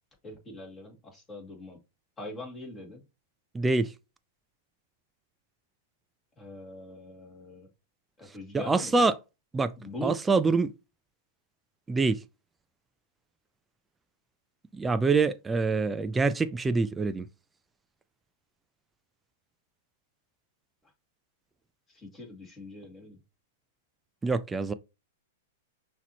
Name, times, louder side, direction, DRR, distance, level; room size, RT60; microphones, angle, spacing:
voice 1, 0.2-1.8 2.2-3.0 6.4-7.7 8.2-9.1 9.8-10.3 21.9-23.2, left 1 dB, 20° left, 2.2 m, -42 dB
voice 2, 3.5-3.9 8.5-9.1 9.5-9.7 10.0-10.7 11.9-12.2 14.7-17.3 24.2-24.7, right 4 dB, 10° right, 0.3 m, -25 dB
5.9 x 2.9 x 2.9 m
hypercardioid pair, 125°, 0 cm